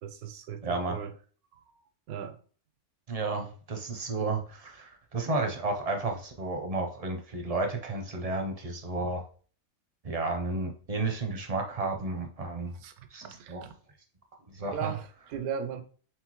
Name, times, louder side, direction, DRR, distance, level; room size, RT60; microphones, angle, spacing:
voice 1, 0.0-1.1 2.1-2.4 9.0-9.1 12.8-12.9 13.2-13.7 14.7-15.8, right 7 dB, 80° right, 1.1 m, -37 dB
voice 2, 0.6-1.0 3.1-9.2 10.0-12.7 13.1-13.6 14.5-14.9, right 3 dB, 40° right, 0.5 m, -32 dB
4.6 x 3.7 x 3.0 m
omnidirectional pair, 1.5 m